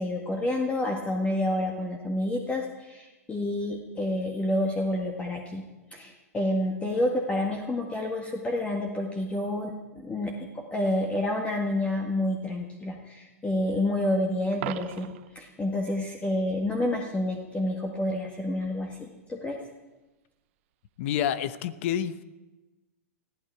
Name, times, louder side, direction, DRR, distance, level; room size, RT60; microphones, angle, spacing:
voice 1, 0.0-5.7 5.9-9.7 10.0-19.6, left 1 dB, 15° left, 1 dB, 1.9 m, -29 dB
Coin (dropping), 14.5-15.4 21.5-21.6, right 15 dB, 55° right, 0.7 m, -37 dB
voice 2, 21.0-22.2, left 10 dB, 55° left, 14 dB, 1.0 m, -28 dB
20.5 x 15.0 x 4.8 m, 1.1 s
hypercardioid pair, 105°, 8 cm